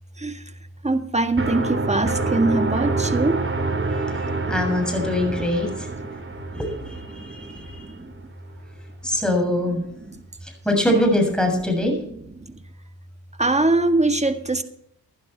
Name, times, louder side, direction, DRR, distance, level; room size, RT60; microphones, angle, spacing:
voice 1, 0.8-3.4 4.1-4.4 7.1-8.1 10.1-10.2 13.4-14.6, right 2 dB, 20° right, 8 dB, 1.7 m, -23 dB
sound 1, 1.4-8.1, right 3 dB, 35° right, 3.2 m, -27 dB
voice 2, 3.9-5.9 6.6-7.9 9.0-9.8 10.4-11.9, left 1 dB, ahead, 3 dB, 7.0 m, -23 dB
15.5 x 11.5 x 4.6 m, 0.72 s
supercardioid pair, 55°, 36 cm